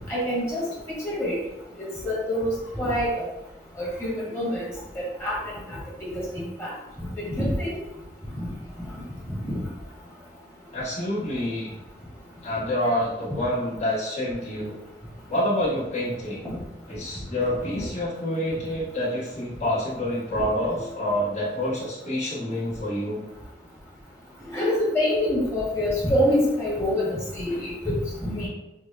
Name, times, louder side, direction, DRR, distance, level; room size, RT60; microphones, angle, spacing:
voice 1, 0.1-1.4 1.8-3.2 3.8-4.6 5.2-5.4 5.7-5.8 6.6-6.7 7.2-7.8 8.3-8.5 9.3-9.5 17.7-17.8 24.5-28.5, left 1 dB, 15° left, -7 dB, 1.4 m, -26 dB
voice 2, 10.7-11.7 12.4-14.8 15.3-16.4 16.9-23.2, left 1 dB, 40° left, -7 dB, 1.4 m, -27 dB
6.2 x 2.2 x 2.5 m, 0.97 s
head